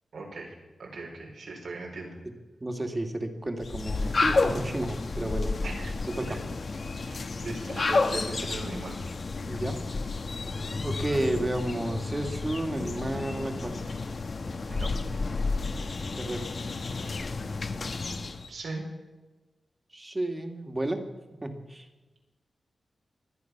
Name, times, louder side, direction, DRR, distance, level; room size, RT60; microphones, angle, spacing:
voice 1, 0.1-2.2 4.0-4.2 5.6-5.9 6.2-6.4 7.1-9.0 10.5-10.8 14.7-14.9 18.5-18.8, right 3 dB, 85° right, -1 dB, 4.6 m, -39 dB
voice 2, 2.6-5.5 6.2-6.4 9.4-9.9 10.8-14.0 16.2-16.6 19.9-21.1 21.4-21.9, right 1 dB, 25° right, 5 dB, 2.1 m, -32 dB
sound 1, 3.6-18.5, left 3 dB, 55° left, 1.2 m, -31 dB
24.5 x 9.6 x 6.0 m, 1.2 s
wide cardioid pair, 85°, 0 cm